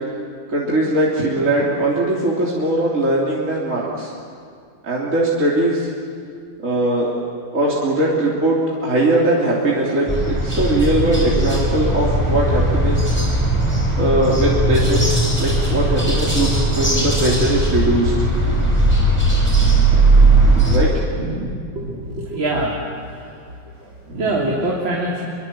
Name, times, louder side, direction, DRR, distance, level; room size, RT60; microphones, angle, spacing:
voice 1, 0.5-4.1 4.8-5.9 6.6-7.1 7.5-13.0 14.0-15.0 15.4-18.1 18.4-18.7 20.5-22.0 24.1-24.5, right 1 dB, 40° right, -5 dB, 3.7 m, -20 dB
sound 1, 10.1-20.8, right 2 dB, 5° left, 5.6 m, -17 dB
voice 2, 21.8-23.5 23.8-23.9 24.2-25.2, right 1 dB, 75° right, -4 dB, 4.2 m, -24 dB
27.5 x 24.0 x 7.7 m, 2.2 s
omnidirectional pair, 2.2 m